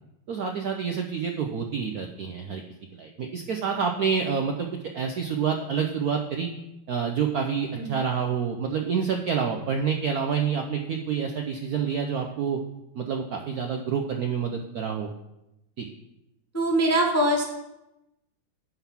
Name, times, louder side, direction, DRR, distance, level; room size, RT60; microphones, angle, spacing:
voice 1, 0.3-2.6 2.9-4.7 4.9-6.5 6.9-12.6 12.9-15.1 15.8-15.9, right 6 dB, 75° right, 3 dB, 0.8 m, -28 dB
voice 2, 16.5-17.5, right 1 dB, 20° left, 1 dB, 0.4 m, -23 dB
9.9 x 4.0 x 7.1 m, 0.92 s
omnidirectional pair, 2.3 m